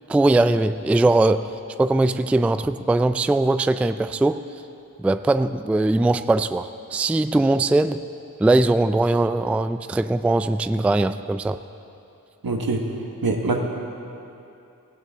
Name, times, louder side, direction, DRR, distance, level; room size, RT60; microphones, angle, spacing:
voice 1, 0.1-1.5 1.8-4.4 5.0-8.0 8.4-11.6, right 2 dB, 5° right, 12 dB, 0.3 m, -20 dB
voice 2, 12.4-12.8 13.2-13.6, right 3 dB, 80° right, 2 dB, 1.4 m, -23 dB
17.0 x 15.5 x 3.6 m, 2.7 s
cardioid pair, 50°, 35 cm